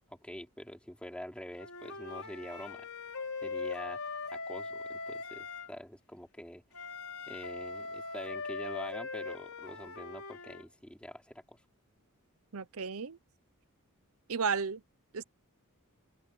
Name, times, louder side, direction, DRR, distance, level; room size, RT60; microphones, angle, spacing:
voice 1, 0.1-2.9 3.4-4.0 4.3-6.6 7.3-11.6, equal, 5° left, 5.0 m, -45 dB
Wind instrument woodwind instrument, 1.6-5.7 6.7-10.6, left 4 dB, 70° left, 4.7 m, -40 dB
voice 2, 12.5-13.2 14.3-14.8 15.1-15.2, right 5 dB, 65° right, 0.8 m, -33 dB
open air
head